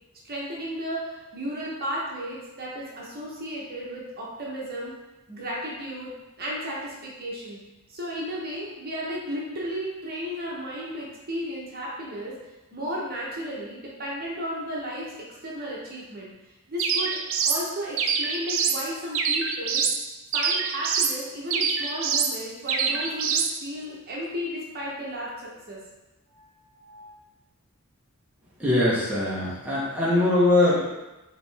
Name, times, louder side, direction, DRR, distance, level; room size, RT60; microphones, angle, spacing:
voice 1, 0.2-4.9 5.3-6.1 6.4-7.6 7.9-12.4 12.7-16.3 16.7-19.8 20.3-25.8 26.3-27.2, equal, 45° right, -4 dB, 1.0 m, -34 dB
sound 1, 16.8-17.6 18.0-18.8 19.1-20.0 20.3-21.2 21.5-22.3 22.7-23.5, right 6 dB, 60° right, 0.4 m, -25 dB
voice 2, 28.6-30.9, left 2 dB, 5° right, -8 dB, 1.0 m, -22 dB
5.0 x 3.0 x 3.4 m, 1.0 s
head